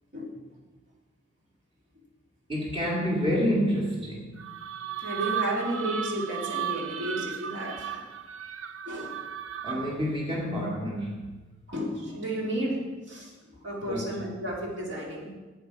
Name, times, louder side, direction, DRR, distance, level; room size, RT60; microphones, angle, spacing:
voice 1, 2.5-4.4 9.6-11.3 13.8-14.2, equal, 25° right, -4 dB, 2.2 m, -28 dB
sound 1, 4.4-10.1, right 8 dB, 90° right, 0.7 m, -35 dB
voice 2, 5.0-8.0 8.9-9.2 11.7-12.8 13.1-13.3 13.6-15.3, right 1 dB, 60° right, -3 dB, 2.5 m, -32 dB
11.0 x 8.7 x 4.7 m, 1.3 s
head